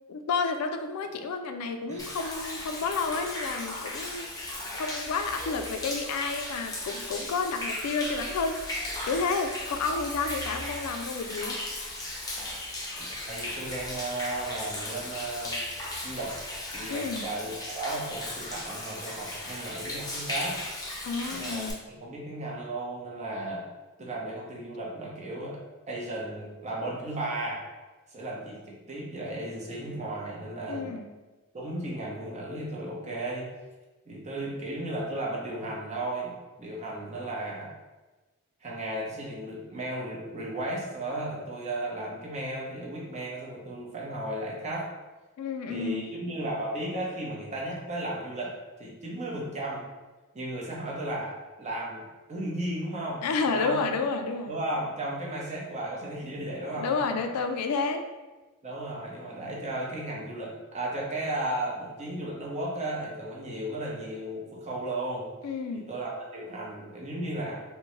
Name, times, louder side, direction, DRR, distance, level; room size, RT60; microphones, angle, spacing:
voice 1, 0.1-4.3 4.7-11.6 16.9-17.3 21.0-21.7 30.7-31.1 45.4-46.1 53.2-54.5 56.7-58.1 65.4-65.9, left 4 dB, 90° left, 6 dB, 0.3 m, -30 dB
Human voice / Rain / Stream, 2.0-21.7, left 1 dB, 15° left, 0.6 m, -36 dB
voice 2, 13.0-15.6 16.0-16.4 16.7-20.6 21.3-21.7 22.0-23.7 24.0-25.6 25.9-27.6 28.1-30.9 31.5-33.5 34.1-37.7 38.6-44.9 45.7-49.9 50.3-53.8 54.5-57.0 58.6-65.3 65.7-67.6, right 1 dB, 30° right, -3 dB, 0.7 m, -35 dB
3.7 x 2.1 x 3.0 m, 1.2 s
head